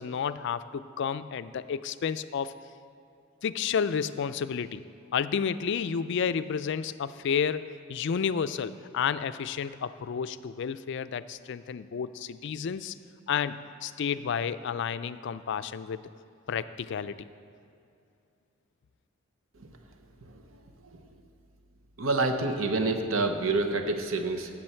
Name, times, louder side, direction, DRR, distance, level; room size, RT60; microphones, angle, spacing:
voice 1, 0.0-2.5 3.4-4.8 5.1-12.9 13.3-16.0 16.5-17.3, left 7 dB, 60° left, 13 dB, 0.4 m, -31 dB
voice 2, 22.0-24.5, right 3 dB, 80° right, 5 dB, 0.9 m, -27 dB
16.0 x 7.6 x 4.4 m, 2.5 s
head